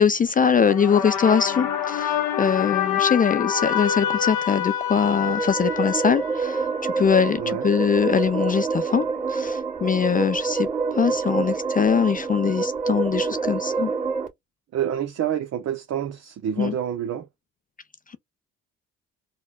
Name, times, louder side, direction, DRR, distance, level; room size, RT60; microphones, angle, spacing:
voice 1, 0.0-13.9 16.6-16.8, left 6 dB, 30° left, 0.4 m, -22 dB
sound 1, 0.6-7.0, left 9 dB, 90° left, 1.0 m, -27 dB
sound 2, 4.9-14.3, right 4 dB, 25° right, 1.8 m, -27 dB
voice 2, 14.7-17.3, right 10 dB, 60° right, 0.7 m, -28 dB
4.1 x 2.2 x 2.3 m
cardioid pair, 90°, 30 cm